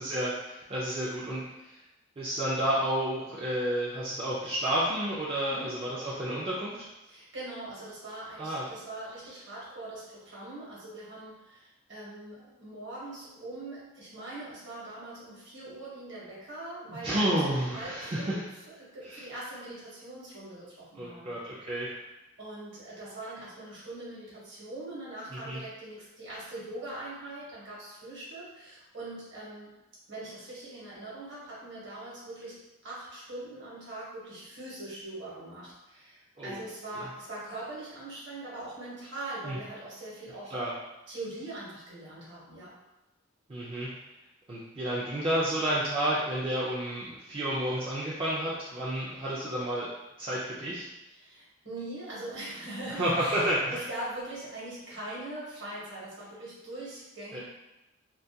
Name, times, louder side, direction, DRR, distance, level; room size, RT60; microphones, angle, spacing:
voice 1, 0.0-1.8 2.2-6.9 8.4-8.6 17.0-18.4 19.0-19.3 21.0-21.9 25.3-25.6 36.4-36.6 36.9-37.1 39.4-39.6 40.5-40.7 43.5-43.9 44.5-49.9 50.2-50.9 53.0-53.8 57.3-57.4, right 1 dB, 25° right, -7 dB, 0.3 m, -31 dB
voice 2, 7.1-18.4 18.8-21.3 22.4-29.7 30.1-40.5 41.1-42.7 51.1-57.4, right 2 dB, 60° right, -7 dB, 0.9 m, -42 dB
2.3 x 2.2 x 2.6 m, 0.97 s
head